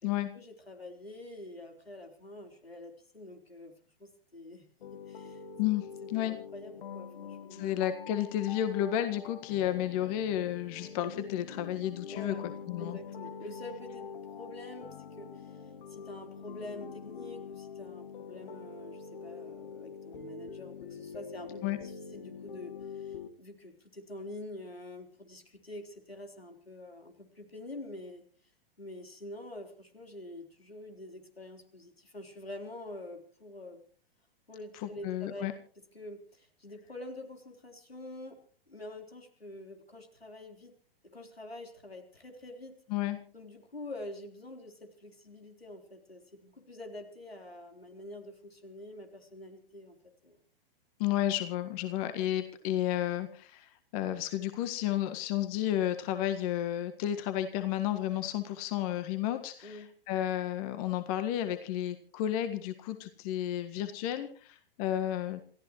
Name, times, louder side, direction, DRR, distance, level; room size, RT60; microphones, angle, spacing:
voice 1, 0.0-3.7 4.0-5.4 6.2-7.7 12.1-12.4 12.8-14.1 14.3-28.2 28.8-33.8 34.5-35.5 35.9-38.4 38.7-40.7 41.0-42.8 43.3-50.0 50.2-50.4 59.6-59.9, left 1 dB, 90° left, 3 dB, 4.0 m, -46 dB
sound 1, 4.8-23.3, left 6 dB, 60° left, 1.7 m, -45 dB
voice 2, 5.6-6.4 7.5-13.0 21.6-21.8 34.8-35.5 42.9-43.2 51.0-65.4, left 12 dB, 40° left, 8 dB, 1.7 m, -32 dB
29.0 x 15.0 x 3.1 m, 0.43 s
figure-of-eight pair, 110°, 30 cm